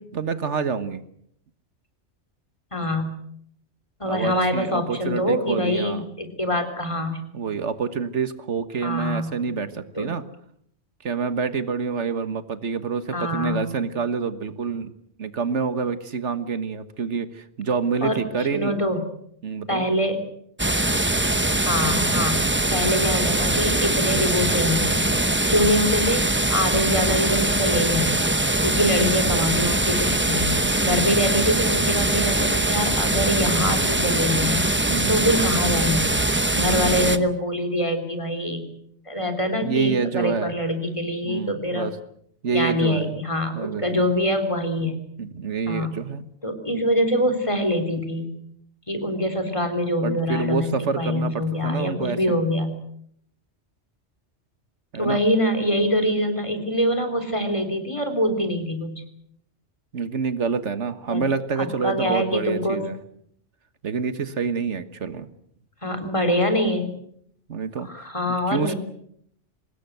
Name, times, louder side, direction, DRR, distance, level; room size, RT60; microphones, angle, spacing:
voice 1, 0.1-1.0 4.1-6.0 7.3-10.2 11.0-14.9 15.2-18.8 19.4-19.8 30.9-31.1 34.9-35.2 36.5-37.3 39.6-40.6 41.2-42.0 42.4-43.1 43.5-44.0 45.2-46.2 50.0-52.4 54.9-55.2 59.9-63.0 63.8-65.3 67.5-67.9 68.5-68.7, right 5 dB, 85° right, 11 dB, 1.7 m, -27 dB
voice 2, 2.7-3.1 4.0-7.2 8.8-9.3 10.0-10.1 13.1-13.7 18.0-18.2 18.5-19.0 19.7-20.2 21.7-22.4 22.7-25.1 25.5-30.6 30.9-34.7 35.1-36.2 36.6-38.7 39.1-41.9 42.5-45.0 45.7-45.9 46.4-48.4 48.9-52.7 55.0-59.0 61.1-61.2 61.6-62.8 65.8-66.9 67.9-68.8, left 1 dB, 25° left, 6 dB, 3.6 m, -24 dB
sound 1, 20.6-37.2, right 1 dB, 10° right, 0.9 m, -22 dB
24.5 x 20.0 x 8.0 m, 0.69 s
omnidirectional pair, 1.2 m